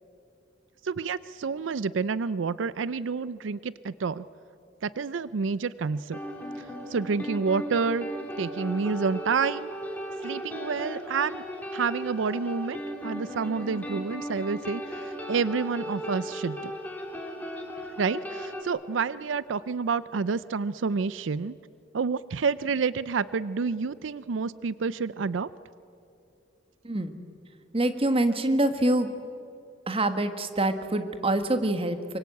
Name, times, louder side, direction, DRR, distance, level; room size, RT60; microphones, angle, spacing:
voice 1, 0.8-4.2 4.8-6.2 6.6-8.1 8.4-9.7 10.2-11.4 11.7-12.8 13.0-16.7 18.0-21.6 21.9-25.5, right 5 dB, 90° right, 17 dB, 0.5 m, -29 dB
sound 1, 6.1-18.6, equal, 10° left, 3.3 m, -37 dB
voice 2, 26.8-27.2 27.7-29.1 29.9-32.2, right 1 dB, 30° right, 9 dB, 1.5 m, -25 dB
24.5 x 23.5 x 8.5 m, 2.7 s
head